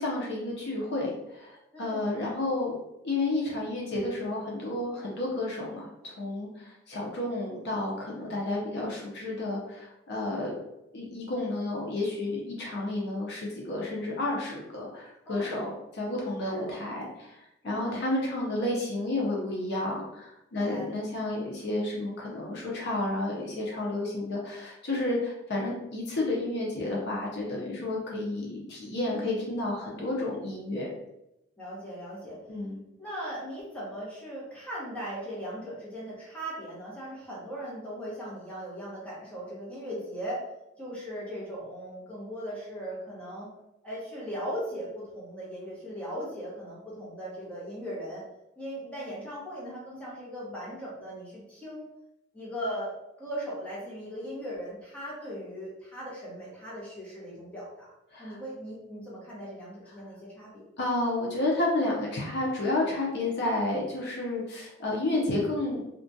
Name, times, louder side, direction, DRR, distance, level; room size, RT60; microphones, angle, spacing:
voice 1, 0.0-2.7 3.0-10.5 10.9-30.9 32.5-32.8 58.1-58.4 60.8-65.8, left 2 dB, 60° left, -3 dB, 0.6 m, -31 dB
voice 2, 1.7-2.1 15.3-15.8 16.5-16.7 17.6-18.0 20.5-20.9 29.1-29.4 31.6-32.4 33.0-40.4 40.8-43.5 43.8-48.2 48.6-51.9 52.3-52.9 53.2-57.9 58.2-60.6, equal, 5° left, -7 dB, 0.9 m, -38 dB
2.4 x 2.2 x 2.6 m, 0.88 s
head